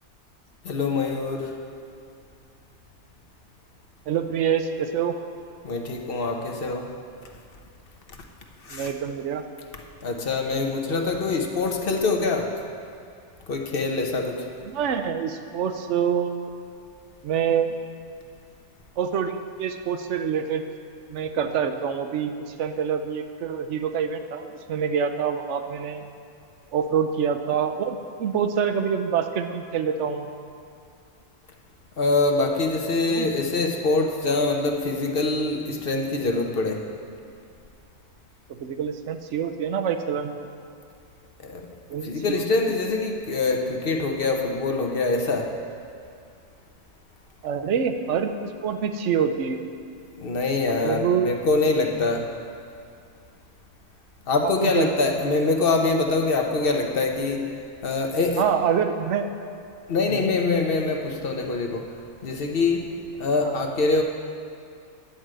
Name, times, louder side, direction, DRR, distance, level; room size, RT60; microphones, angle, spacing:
voice 1, 0.6-1.6 5.6-6.9 8.6-8.9 10.0-12.5 13.5-14.5 32.0-36.9 41.4-41.7 42.0-45.5 50.2-52.3 54.3-57.5 57.8-58.4 59.9-61.9 62.2-64.0, left 3 dB, 55° left, 2 dB, 1.0 m, -24 dB
voice 2, 4.1-5.2 8.7-9.4 14.7-16.5 17.2-17.7 19.0-20.6 21.1-26.1 26.7-30.3 33.1-33.3 38.6-40.5 41.9-42.4 47.4-49.7 50.8-51.3 54.4-54.9 58.4-59.3 60.1-60.3 63.4-63.6, right 7 dB, 90° right, 8 dB, 1.0 m, -26 dB
10.0 x 4.8 x 7.6 m, 2.5 s
omnidirectional pair, 1.2 m